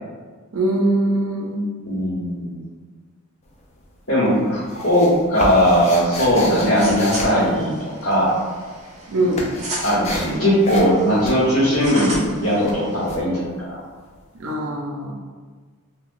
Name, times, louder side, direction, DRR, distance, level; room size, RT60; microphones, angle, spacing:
voice 1, 0.5-1.7 9.1-9.5 14.4-15.1, right 1 dB, 85° right, 0 dB, 0.5 m, -22 dB
voice 2, 1.8-2.5 4.1-8.3 9.8-13.8, equal, 75° left, -10 dB, 0.9 m, -19 dB
sound 1, 3.4-4.0 4.2-8.3 8.6-14.2, left 1 dB, 30° left, 0.3 m, -32 dB
sound 2, 6.4-13.2, right 1 dB, 35° right, 0.6 m, -35 dB
3.0 x 2.1 x 2.5 m, 1.5 s
head